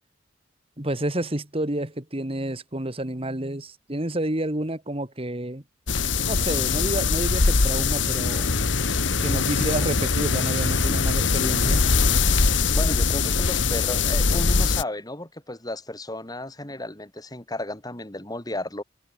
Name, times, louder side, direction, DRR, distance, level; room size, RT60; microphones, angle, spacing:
voice 1, 0.8-5.6 6.3-8.6 9.2-11.8, right 1 dB, 30° right, 2.1 m, -29 dB
sound 1, 5.9-14.8, left 4 dB, 70° left, 1.5 m, -22 dB
voice 2, 12.7-18.8, left 1 dB, 20° left, 4.0 m, -33 dB
head